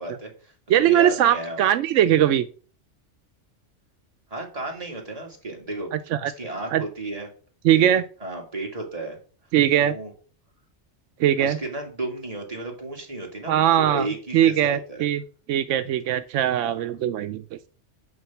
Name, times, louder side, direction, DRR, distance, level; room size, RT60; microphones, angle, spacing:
voice 1, 0.0-1.6 4.3-5.9 6.2-7.3 7.7-9.2 9.8-10.1 11.4-15.0 16.6-16.8, right 2 dB, 30° right, 0 dB, 2.2 m, -33 dB
voice 2, 0.7-2.5 5.9-6.3 6.7-6.8 7.6-8.0 9.5-10.0 11.2-11.6 13.5-14.1 14.3-15.2 15.5-17.7, right 11 dB, 85° right, 11 dB, 0.9 m, -20 dB
6.3 x 5.4 x 7.0 m, 0.41 s
omnidirectional pair, 1.2 m